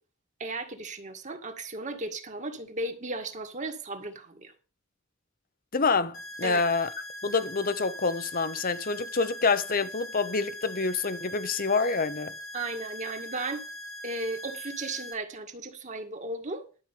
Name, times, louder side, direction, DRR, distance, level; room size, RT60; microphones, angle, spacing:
voice 1, 0.4-4.5 6.4-6.6 12.5-13.6 14.0-16.6, right 2 dB, 35° right, 2.0 m, -35 dB
voice 2, 5.7-6.9 7.2-12.3, left 4 dB, 45° left, 0.9 m, -27 dB
sound 1, 6.1-15.1, equal, 75° left, 3.3 m, -41 dB
12.0 x 5.2 x 8.3 m
head